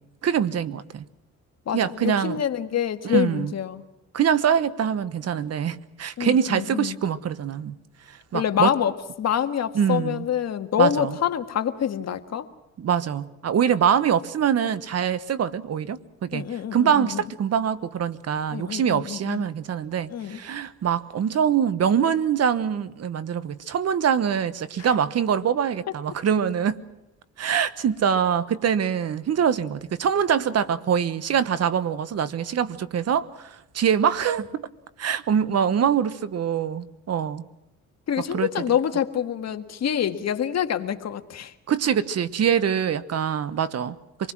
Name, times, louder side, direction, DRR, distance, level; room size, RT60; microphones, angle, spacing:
voice 1, 0.2-1.0 1.7-2.4 3.0-3.5 4.1-7.8 8.3-8.7 9.7-10.2 10.8-11.1 12.8-26.8 27.4-34.7 35.0-37.4 38.3-38.5 41.7-44.3, right 8 dB, 55° right, 15 dB, 1.2 m, -24 dB
voice 2, 1.7-3.8 6.2-7.0 8.3-12.5 16.3-17.2 18.5-19.5 20.1-20.4 24.8-24.9 38.1-41.5, left 9 dB, 60° left, 8 dB, 1.7 m, -26 dB
26.5 x 20.5 x 6.1 m, 0.96 s
cardioid pair, 90°, 30 cm